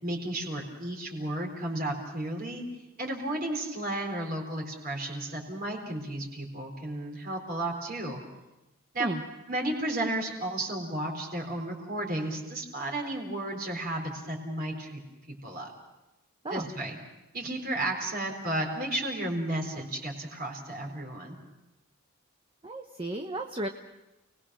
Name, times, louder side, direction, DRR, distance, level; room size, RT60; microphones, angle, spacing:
voice 1, 0.0-2.6 3.0-8.2 8.9-9.1 9.5-15.0 15.3-15.7 16.5-17.0 17.3-21.4, right 1 dB, 40° right, 0 dB, 4.1 m, -33 dB
voice 2, 22.6-23.7, right 1 dB, 25° right, 4 dB, 1.0 m, -33 dB
29.5 x 19.5 x 6.3 m, 0.98 s
head